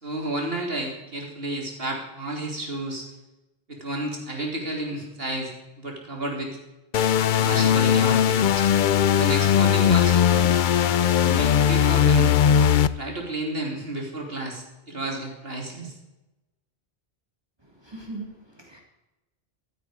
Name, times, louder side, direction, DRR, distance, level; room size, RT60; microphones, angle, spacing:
voice 1, 0.0-3.1 3.7-6.6 7.3-8.7 9.1-10.5 11.2-12.3 13.0-16.0, right 1 dB, 65° right, 0 dB, 3.3 m, -31 dB
sound 1, 6.9-12.9, left 9 dB, 55° left, 0.7 m, -19 dB
voice 2, 17.6-18.8, right 2 dB, 25° right, -1 dB, 2.6 m, -40 dB
15.5 x 12.5 x 5.0 m, 1.0 s
omnidirectional pair, 1.1 m